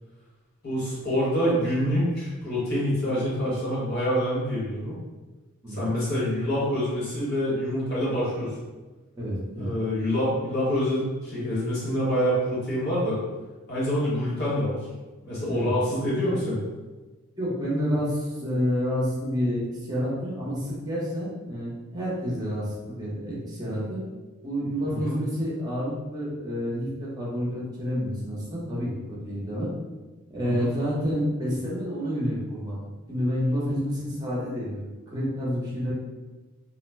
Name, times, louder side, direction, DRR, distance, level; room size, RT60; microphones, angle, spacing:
voice 1, 0.6-5.0 5.7-8.5 9.6-13.2 13.7-14.8 15.2-16.6 24.8-25.2 30.4-30.7, equal, 45° left, -8 dB, 1.2 m, -26 dB
voice 2, 5.6-6.0 9.1-9.7 15.5-15.7 17.4-19.6 19.9-24.0 24.4-29.7 30.3-34.9 35.1-35.9, equal, 20° right, -6 dB, 0.8 m, -29 dB
2.4 x 2.1 x 3.2 m, 1.2 s
head